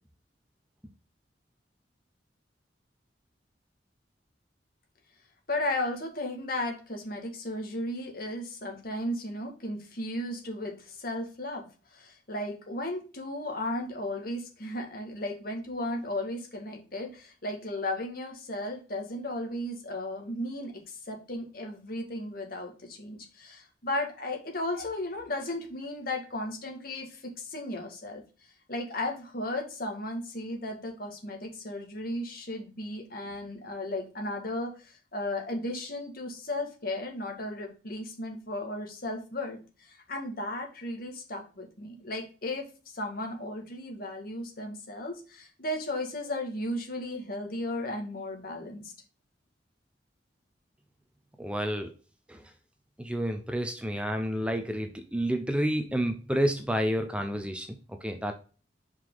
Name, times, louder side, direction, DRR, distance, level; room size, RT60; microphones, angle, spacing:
voice 1, 5.5-28.2 28.7-48.9, left 1 dB, 55° left, 3 dB, 1.9 m, -35 dB
voice 2, 51.4-51.9 52.3-52.4 53.0-57.7 58.0-58.3, equal, 5° right, 5 dB, 0.7 m, -29 dB
5.5 x 4.9 x 3.9 m, 0.35 s
head